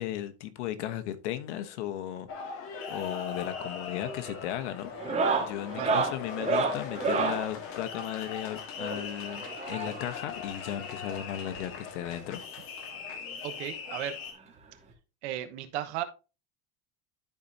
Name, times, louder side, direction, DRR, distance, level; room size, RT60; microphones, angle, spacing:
voice 1, 0.0-12.4, left 11 dB, 90° left, 1.1 m, -36 dB
sound 1, 2.3-14.3, left 6 dB, 40° left, 1.6 m, -40 dB
sound 2, 3.4-3.8 4.0-4.4 4.9-7.5 8.8-10.2 11.2-11.3 11.5-11.6 12.1-12.2 13.5-13.6 14.9-15.0, right 4 dB, 20° right, 1.6 m, -30 dB
voice 2, 13.4-14.1 15.2-16.0, right 12 dB, 75° right, 1.2 m, -35 dB
12.5 x 4.2 x 2.7 m
supercardioid pair, 160°, 34 cm